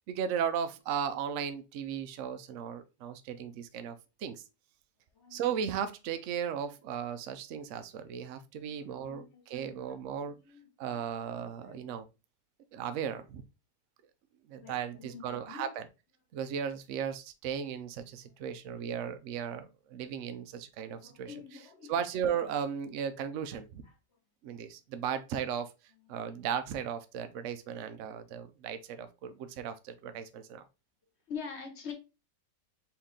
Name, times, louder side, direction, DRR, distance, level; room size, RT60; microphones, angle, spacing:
voice 1, 0.1-4.4 5.3-10.4 10.8-12.0 12.7-13.4 14.5-15.9 16.3-21.3 21.9-23.8 24.4-25.7 26.1-30.6, right 8 dB, 90° right, 0.6 m, -36 dB
voice 2, 8.6-9.6 9.9-10.6 10.9-11.1 11.4-11.8 14.6-15.7 21.0-21.9 23.8-23.9 31.3-31.9, left 6 dB, 45° left, 1.0 m, -46 dB
4.3 x 2.9 x 3.6 m
omnidirectional pair, 2.0 m